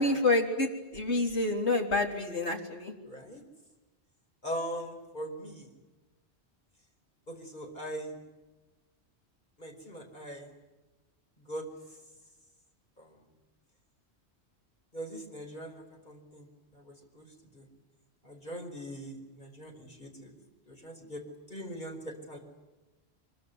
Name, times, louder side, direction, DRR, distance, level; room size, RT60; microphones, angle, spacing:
voice 1, 0.0-2.9, left 2 dB, 75° left, 2 dB, 4.0 m, -28 dB
voice 2, 3.0-3.4 4.4-5.7 7.3-8.1 9.6-10.5 11.5-11.6 14.9-15.7 16.1-16.4 17.2-17.3 17.5-17.6 18.3-20.3 20.8-21.2 21.5-22.4, equal, 40° left, 3 dB, 5.1 m, -40 dB
24.5 x 23.5 x 9.6 m, 1.1 s
omnidirectional pair, 1.1 m